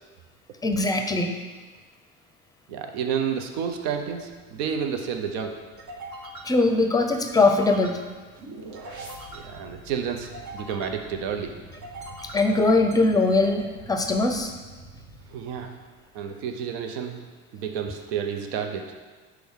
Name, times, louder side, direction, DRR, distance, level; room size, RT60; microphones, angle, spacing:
voice 1, 0.6-1.4 6.4-8.0 12.2-14.5, left 3 dB, 10° left, 5 dB, 0.5 m, -21 dB
voice 2, 2.7-5.5 9.3-11.6 15.3-15.7 16.1-17.2 17.5-18.9, right 7 dB, 90° right, 5 dB, 0.7 m, -30 dB
sound 1, 3.5-16.2, right 2 dB, 65° right, 1.1 m, -43 dB
6.1 x 4.7 x 3.6 m, 1.4 s
supercardioid pair, 105°, 31 cm